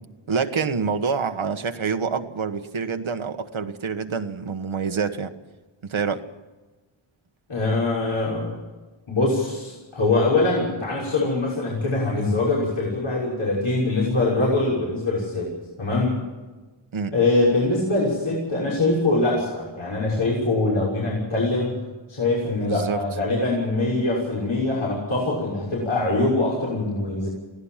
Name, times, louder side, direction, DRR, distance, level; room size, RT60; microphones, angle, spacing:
voice 1, 0.3-5.3 5.8-6.2 16.9-17.1 22.6-23.0, right 5 dB, 75° right, 8 dB, 1.5 m, -26 dB
voice 2, 7.5-8.5 9.1-15.5 15.8-16.2 17.1-21.7 22.1-27.3, left 2 dB, 80° left, -6 dB, 6.4 m, -23 dB
22.0 x 16.5 x 7.4 m, 1.2 s
wide cardioid pair, 75°, 48 cm